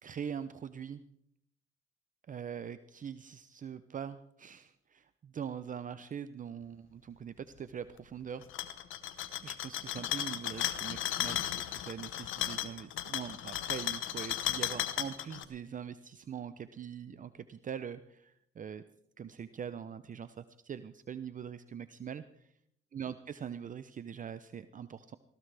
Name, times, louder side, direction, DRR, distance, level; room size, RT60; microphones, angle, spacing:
voice 1, 0.0-1.0 2.3-8.7 9.4-18.8 19.2-22.5 22.9-25.2, right 8 dB, 40° right, 13 dB, 0.6 m, -43 dB
sound 1, 8.4-15.4, left 12 dB, 85° left, 1.1 m, -35 dB
19.0 x 16.5 x 3.4 m, 0.70 s
cardioid pair, 90°, 20 cm